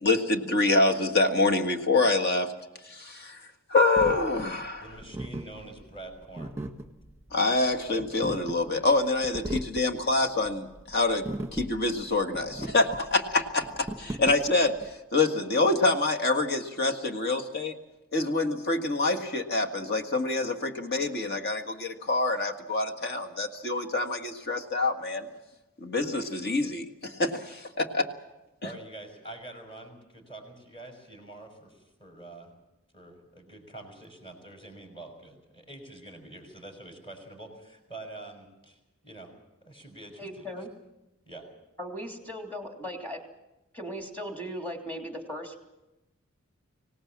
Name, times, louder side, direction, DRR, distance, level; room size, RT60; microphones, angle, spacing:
voice 1, 0.0-2.5 2.8-3.4 3.7-4.9 7.3-11.2 11.5-14.8 15.1-17.7 18.1-25.3 25.8-28.1, left 2 dB, 50° left, 6 dB, 1.8 m, -26 dB
sound 1, 4.0-14.9, right 1 dB, 10° right, 1.6 m, -39 dB
voice 2, 4.8-6.5 28.6-32.5 32.9-39.3 39.6-40.5 41.3-41.4, right 2 dB, 25° left, 4 dB, 5.9 m, -46 dB
voice 3, 40.2-40.7 41.8-43.2 43.7-45.6, equal, 10° left, 2 dB, 3.2 m, -37 dB
24.5 x 18.0 x 7.4 m, 0.97 s
head